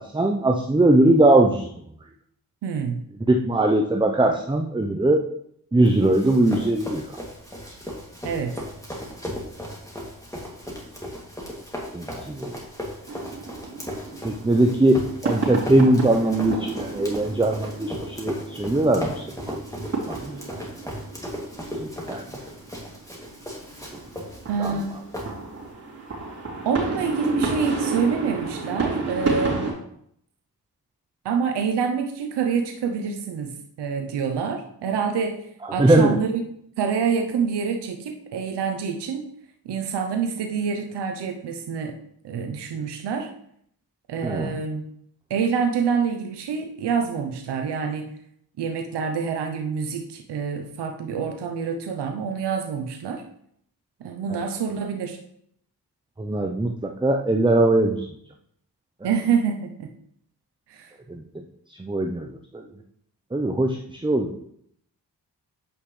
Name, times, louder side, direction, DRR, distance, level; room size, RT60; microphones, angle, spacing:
voice 1, 0.0-1.7 3.3-5.2 5.7-7.0 11.9-12.5 14.2-19.6 20.1-20.6 21.8-22.2 23.9-24.0 24.6-24.7 35.8-36.2 44.2-44.5 56.2-58.1 61.1-61.4 61.8-62.6 63.3-64.3, right 2 dB, 10° right, 3 dB, 0.7 m, -21 dB
voice 2, 2.6-3.0 8.2-8.5 24.5-24.9 26.6-29.7 31.2-36.4 36.8-39.3 39.6-42.0 42.2-43.3 44.1-44.8 45.3-48.1 48.6-53.2 54.0-55.2 59.0-59.9 60.7-60.9, right 6 dB, 80° right, 4 dB, 0.8 m, -26 dB
Run, 5.8-25.7, equal, 10° left, 2.5 m, -37 dB
sound 1, 13.1-29.7, right 3 dB, 40° right, 3.1 m, -32 dB
8.5 x 5.5 x 3.2 m, 0.69 s
cardioid pair, 50°, 40 cm